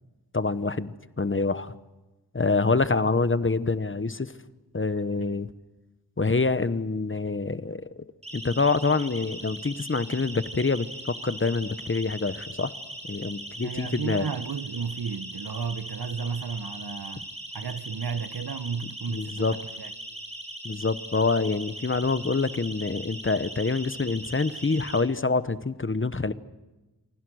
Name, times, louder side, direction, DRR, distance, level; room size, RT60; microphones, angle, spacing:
voice 1, 0.3-1.7 2.3-4.3 4.7-5.5 6.2-8.0 8.3-12.7 13.1-14.3 19.1-19.5 20.6-26.3, left 3 dB, 30° left, 1.1 m, -26 dB
Siren, 8.2-25.0, right 1 dB, 15° right, 5.8 m, -40 dB
voice 2, 13.6-19.9, right 6 dB, 70° right, 1.2 m, -33 dB
28.0 x 24.0 x 6.4 m
wide cardioid pair, 70°, 38 cm